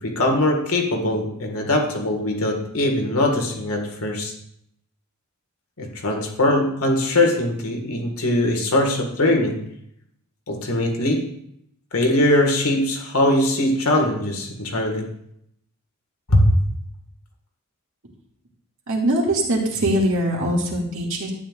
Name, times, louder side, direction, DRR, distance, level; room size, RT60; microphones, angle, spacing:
voice 1, 0.0-4.3 5.8-9.6 10.5-11.3 11.9-15.1 16.3-16.5, left 1 dB, 80° left, 2 dB, 1.8 m, -21 dB
voice 2, 18.9-21.3, right 1 dB, 60° right, -1 dB, 2.1 m, -22 dB
11.5 x 9.1 x 2.5 m, 0.72 s
head